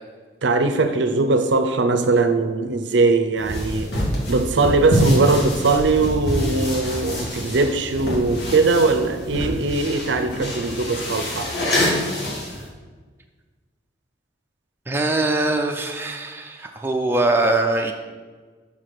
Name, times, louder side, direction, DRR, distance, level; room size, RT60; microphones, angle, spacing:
voice 1, 0.4-3.9 4.3-11.5, right 3 dB, 70° right, 8 dB, 0.5 m, -20 dB
sound 1, 3.4-12.7, left 1 dB, 60° left, 2.0 m, -26 dB
voice 2, 14.9-17.9, right 2 dB, 10° right, 2 dB, 0.4 m, -22 dB
5.7 x 4.8 x 5.9 m, 1.4 s
head